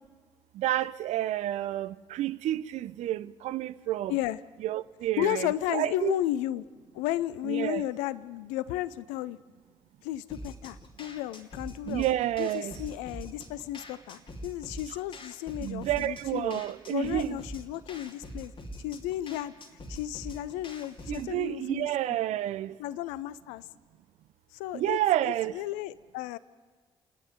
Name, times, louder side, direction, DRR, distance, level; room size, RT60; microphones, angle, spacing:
voice 1, 0.5-4.2 4.6-6.2 7.4-7.8 11.9-12.7 15.6-17.4 21.1-22.8 24.7-25.5, right 13 dB, 60° right, 0.6 m, -30 dB
voice 2, 5.2-6.6 6.9-9.4 10.0-12.1 12.4-16.6 16.9-18.5 18.8-19.5 19.9-22.2 22.8-23.6 24.6-26.4, left 14 dB, 70° left, 0.6 m, -33 dB
sound 1, 10.3-21.3, equal, 40° left, 2.7 m, -44 dB
30.0 x 10.0 x 9.2 m
figure-of-eight pair, 45°, 13 cm